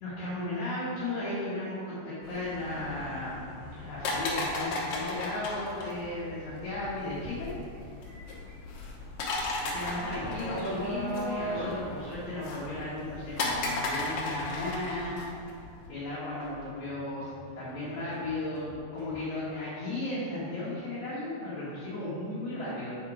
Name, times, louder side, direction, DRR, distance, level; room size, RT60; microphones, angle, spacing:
voice 1, 0.0-7.5 9.6-15.2 15.9-17.3 17.6-23.0, left 2 dB, 60° left, -10 dB, 2.7 m, -35 dB
sound 1, 2.2-15.9, left 2 dB, 90° left, 2.7 m, -36 dB
sound 2, 7.0-7.2 7.6-14.6, right 1 dB, 60° right, 3.0 m, -37 dB
sound 3, 10.3-19.2, left 1 dB, 40° left, 2.0 m, -52 dB
8.0 x 4.7 x 4.8 m, 2.4 s
omnidirectional pair, 3.9 m